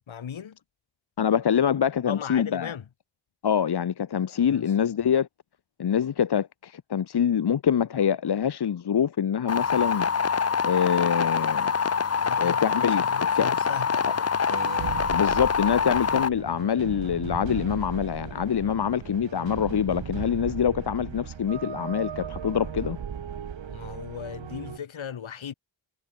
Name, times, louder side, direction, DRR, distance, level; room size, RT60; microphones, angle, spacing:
voice 1, 0.1-0.6 2.1-2.8 4.5-4.7 12.1-14.4 16.0-16.1 18.6-18.8 23.7-25.5, left 8 dB, 85° left, 4.1 m, -38 dB
voice 2, 1.2-2.7 3.4-5.3 5.8-10.1 10.6-11.7 12.4-13.1 13.4-13.5 15.1-23.0, left 8 dB, 55° left, 1.2 m, -25 dB
sound 1, 9.5-16.3, left 6 dB, 35° left, 0.8 m, -25 dB
sound 2, 14.5-24.8, right 8 dB, 75° right, 2.5 m, -37 dB
wide cardioid pair, 90°, 46 cm